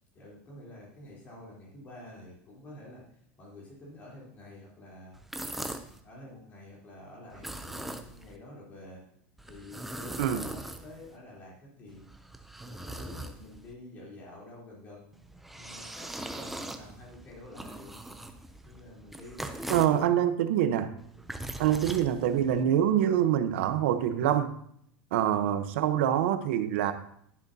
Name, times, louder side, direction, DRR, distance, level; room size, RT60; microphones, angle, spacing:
voice 1, 0.1-3.0 3.4-5.2 6.0-9.0 9.4-12.1 12.6-17.9 18.6-20.2 21.3-21.6, left 1 dB, 25° left, -4 dB, 3.4 m, -49 dB
sound 1, 5.1-6.0 7.3-8.4 9.4-11.2 11.9-13.7 15.1-20.0 21.0-22.6, right 1 dB, 5° right, 0.5 m, -41 dB
voice 2, 19.7-20.9 21.6-24.5 25.1-26.9, right 10 dB, 85° right, 9 dB, 0.9 m, -25 dB
11.0 x 11.0 x 2.8 m, 0.68 s
cardioid pair, 180°, 6 cm